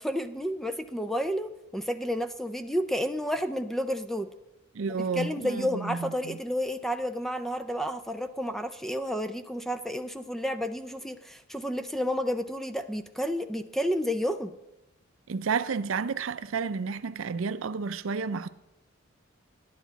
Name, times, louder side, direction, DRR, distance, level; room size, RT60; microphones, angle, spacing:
voice 1, 0.0-4.3 5.2-14.5, equal, ahead, 0.4 m, -31 dB
voice 2, 4.7-6.4 15.3-18.5, right 5 dB, 75° right, 0.5 m, -31 dB
11.5 x 10.5 x 4.0 m
head